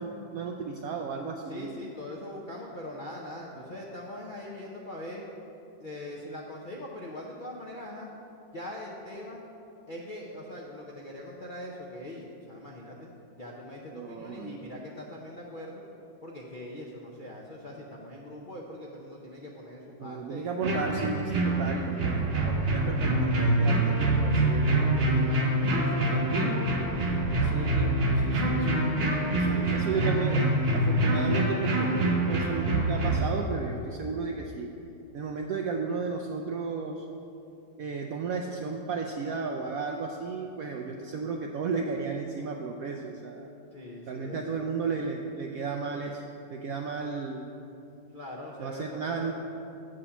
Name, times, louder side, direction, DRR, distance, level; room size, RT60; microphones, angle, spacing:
voice 1, 0.0-1.8 13.9-14.7 20.0-26.6 27.0-27.1 27.4-28.0 28.2-28.8 29.3-34.7 35.1-37.0 37.8-43.5 44.1-46.2 46.5-47.5 48.6-49.3, right 5 dB, 75° right, 2 dB, 0.8 m, -34 dB
voice 2, 1.5-5.2 5.8-8.1 8.5-9.4 9.9-13.1 13.4-15.8 16.2-20.5 21.9-22.7 25.7-26.3 27.3-28.0 29.5-29.9 43.7-44.7 48.1-49.3, left 1 dB, 65° left, -3 dB, 0.5 m, -42 dB
sound 1, 20.6-33.3, right 1 dB, 40° right, 1.0 m, -25 dB
8.5 x 5.1 x 6.9 m, 2.8 s
omnidirectional pair, 1.9 m